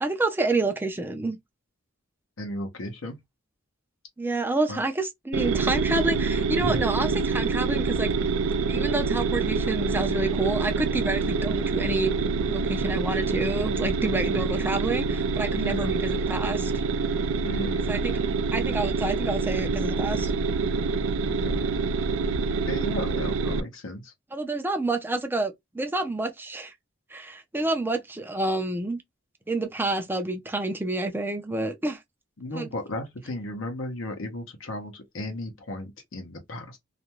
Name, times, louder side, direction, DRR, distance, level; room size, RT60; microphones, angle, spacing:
voice 1, 0.0-1.4 4.2-8.1 8.7-16.7 17.9-18.2 18.5-20.3 24.3-26.7 27.1-29.0 29.5-32.0 32.5-32.7, right 2 dB, 10° right, 0.5 m, -28 dB
voice 2, 2.4-3.2 4.7-4.8 6.6-6.8 14.5-14.6 15.6-16.0 17.4-18.0 21.2-21.7 22.4-24.1 32.4-36.8, left 1 dB, 70° left, 0.8 m, -35 dB
sound 1, 5.3-23.6, right 4 dB, 75° right, 0.4 m, -26 dB
2.4 x 2.2 x 2.9 m
head